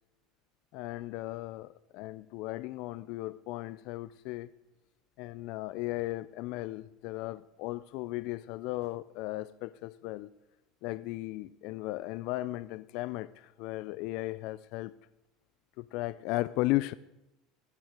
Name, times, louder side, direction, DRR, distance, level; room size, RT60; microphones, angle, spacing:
voice 1, 0.7-4.5 5.2-10.3 10.8-14.9 15.8-16.9, left 18 dB, 65° left, 0.4 m, -36 dB
15.5 x 7.5 x 6.5 m
supercardioid pair, 130°, 0 cm